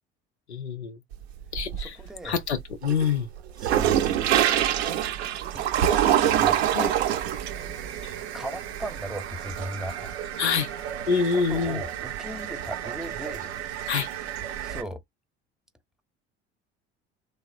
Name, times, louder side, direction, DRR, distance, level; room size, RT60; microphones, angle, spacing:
voice 1, 0.5-1.0 1.5-2.0 2.2-3.3 6.7-6.9 10.4-10.7 11.1-11.8 13.9-14.1, left 6 dB, 85° left, 0.5 m, -26 dB
sound 1, 1.1-2.1 2.5-14.8, right 11 dB, 75° right, 0.6 m, -27 dB
voice 2, 1.8-2.4 3.6-4.2 5.5-7.0 8.3-10.2 11.1-13.5 14.6-15.0, right 1 dB, ahead, 0.7 m, -37 dB
3.1 x 2.1 x 2.6 m
figure-of-eight pair, 60°, 32 cm